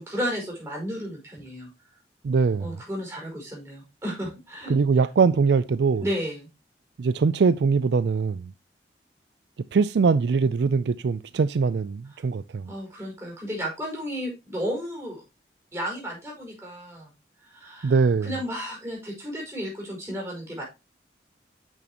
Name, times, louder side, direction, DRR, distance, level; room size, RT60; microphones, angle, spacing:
voice 1, 0.0-1.7 2.6-4.8 6.0-6.5 12.7-15.2 15.7-17.1 17.4-17.9 18.2-20.6, equal, 15° right, 4.8 m, -33 dB
voice 2, 2.2-2.8 4.7-6.0 7.0-8.5 9.7-12.7 17.8-18.3, right 5 dB, 75° right, 0.4 m, -22 dB
8.8 x 6.2 x 2.9 m
head